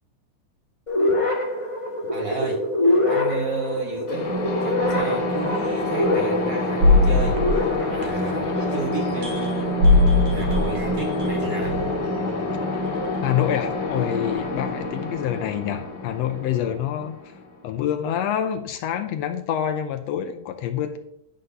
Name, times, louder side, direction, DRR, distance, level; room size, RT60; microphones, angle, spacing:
sound 1, 0.9-8.8, left 2 dB, 25° left, 0.7 m, -25 dB
voice 1, 2.1-2.6 3.0-9.9 10.3-11.8, right 4 dB, 70° right, 1 dB, 0.9 m, -32 dB
sound 2, 4.1-17.7, left 1 dB, 40° left, 2.3 m, -27 dB
sound 3, 4.8-4.9 5.6-5.8 6.8-8.5 8.9-12.1 12.8-13.0, left 2 dB, 50° right, 2.4 m, -21 dB
voice 2, 13.2-17.3 17.6-21.0, left 10 dB, 85° left, 6 dB, 1.5 m, -26 dB
11.0 x 3.9 x 6.6 m, 0.78 s
omnidirectional pair, 3.6 m